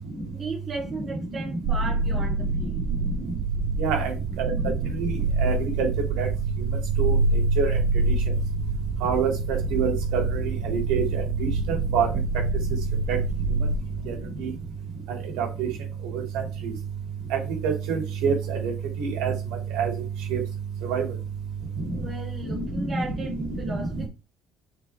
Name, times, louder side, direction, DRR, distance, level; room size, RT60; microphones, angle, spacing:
voice 1, 0.3-2.9 21.9-24.1, right 2 dB, 25° right, 3.0 m, -36 dB
sound 1, 1.7-13.8, right 3 dB, 55° right, 0.5 m, -26 dB
voice 2, 3.8-4.1 4.4-4.7 5.0-5.1 5.4-5.9 6.2-6.3 7.0-7.2 7.6-7.8 9.0-12.1 13.1-13.2 14.1-14.2 14.4-14.5 15.4-15.7 16.1-16.4 17.6-18.7 19.0-19.3 19.8-19.9 20.3-20.4 20.9-21.1, right 6 dB, 90° right, 2.8 m, -26 dB
6.8 x 4.3 x 3.5 m
cardioid pair, 155°, 0 cm